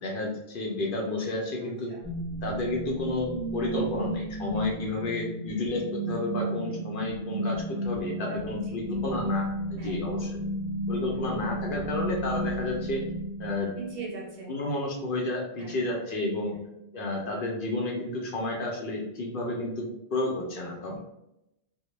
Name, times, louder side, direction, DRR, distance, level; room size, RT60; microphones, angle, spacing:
voice 1, 0.0-1.9 2.4-10.4 10.9-13.0 13.4-13.7 14.5-16.6 16.9-21.0, left 2 dB, 60° left, 0 dB, 0.6 m, -31 dB
sound 1, 2.0-14.0, right 1 dB, 20° right, 0.9 m, -33 dB
voice 2, 8.2-8.5 9.8-10.0 11.1-11.5 13.8-14.6 15.6-15.9 16.5-16.7 20.9-21.0, right 3 dB, 75° right, -3 dB, 0.8 m, -40 dB
2.1 x 2.1 x 3.0 m, 0.86 s
omnidirectional pair, 1.1 m